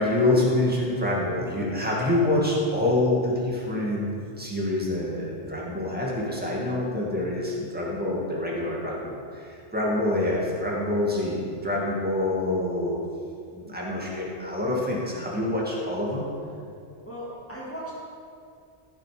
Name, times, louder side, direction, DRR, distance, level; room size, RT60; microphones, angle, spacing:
voice 1, 0.0-4.1 4.4-13.0 13.5-16.2, left 1 dB, 10° right, -4 dB, 2.1 m, -26 dB
voice 2, 17.1-17.9, right 1 dB, 10° left, -7 dB, 2.0 m, -37 dB
15.0 x 6.7 x 5.1 m, 2.3 s
omnidirectional pair, 1.2 m